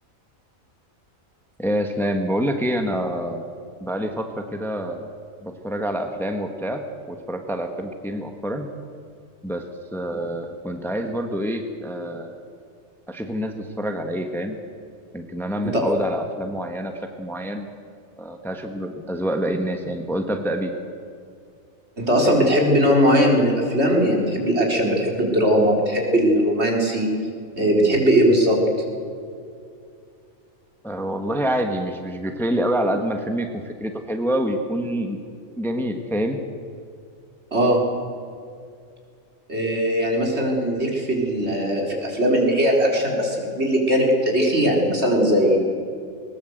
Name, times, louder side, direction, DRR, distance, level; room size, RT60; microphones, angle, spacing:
voice 1, 1.6-3.4 3.8-5.0 5.4-6.8 7.1-8.7 9.4-9.6 9.9-12.4 13.1-14.6 15.1-17.7 18.2-20.7 30.8-35.2 35.6-36.4, equal, ahead, 5 dB, 1.4 m, -26 dB
voice 2, 22.0-27.1 27.6-28.6 37.5-37.8 39.5-45.6, equal, 50° right, 0 dB, 4.3 m, -19 dB
20.5 x 20.5 x 8.0 m, 2.4 s
omnidirectional pair, 1.4 m